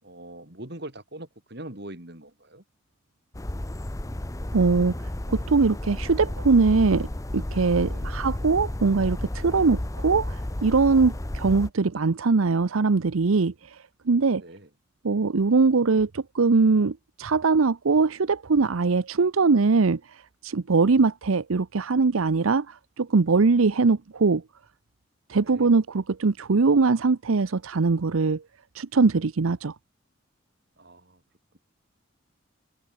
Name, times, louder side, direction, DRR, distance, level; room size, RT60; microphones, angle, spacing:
voice 1, 0.0-2.6 7.9-8.2 14.3-14.7 25.4-25.7 30.8-31.2, right 1 dB, 50° right, 3.8 m, -42 dB
sound 1, 3.3-11.7, left 1 dB, 15° left, 0.7 m, -32 dB
voice 2, 4.5-4.9 5.3-7.1 7.3-13.8 14.1-14.4 15.0-24.4 25.3-28.4 28.7-29.7, right 4 dB, 85° right, 0.7 m, -22 dB
open air
head